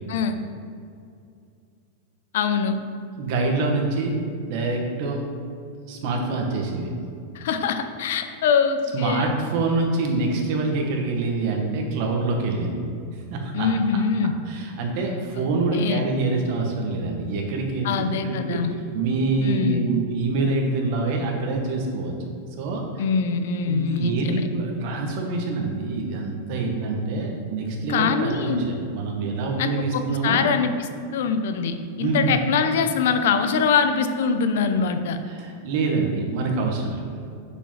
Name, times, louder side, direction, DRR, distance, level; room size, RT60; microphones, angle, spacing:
voice 1, 2.3-2.8 7.3-9.3 13.5-14.3 15.4-16.0 17.8-18.7 19.4-19.9 23.0-24.5 27.9-28.6 29.6-35.2, left 6 dB, 70° left, 8 dB, 0.7 m, -23 dB
voice 2, 3.2-4.1 4.5-5.2 5.9-6.9 8.9-12.8 13.3-13.7 14.5-17.9 18.2-18.6 18.9-22.1 22.6-23.0 23.7-30.4 32.0-32.3 35.3-37.0, right 3 dB, 50° right, 1 dB, 1.4 m, -25 dB
6.7 x 5.3 x 5.6 m, 2.4 s
supercardioid pair, 155°, 0 cm